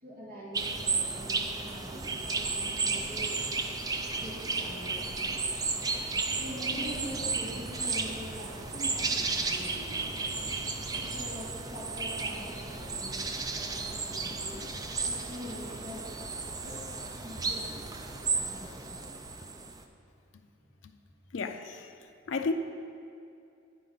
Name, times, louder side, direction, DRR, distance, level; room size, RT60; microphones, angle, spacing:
voice 1, 0.0-5.5 6.4-10.0 10.4-14.7 15.0-18.0 18.3-19.1 20.6-20.7, equal, 45° right, -7 dB, 2.0 m, -44 dB
sound 1, 0.5-19.8, right 4 dB, 20° right, 0.4 m, -33 dB
Bird vocalization bird call bird song, 2.8-14.8, equal, 85° right, 1.1 m, -51 dB
voice 2, 21.3-22.5, left 4 dB, 75° left, 6 dB, 0.5 m, -34 dB
10.5 x 4.8 x 5.5 m, 2.6 s
head